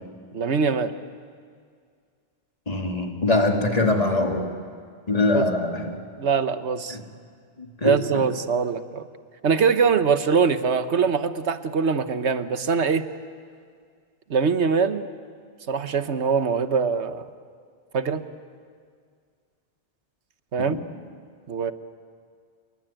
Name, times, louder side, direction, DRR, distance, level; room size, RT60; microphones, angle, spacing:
voice 1, 0.3-0.9 5.3-5.4 6.2-7.0 7.8-9.0 9.4-13.1 14.3-15.1 15.7-17.2 17.9-18.2 20.5-20.8 21.5-21.7, right 5 dB, 85° right, 10 dB, 1.4 m, -23 dB
voice 2, 2.7-4.5 5.1-6.0 6.9-7.0 7.6-8.2 20.6-20.8, left 2 dB, 35° left, 2 dB, 2.8 m, -23 dB
28.5 x 22.0 x 9.1 m, 2.1 s
omnidirectional pair, 1.1 m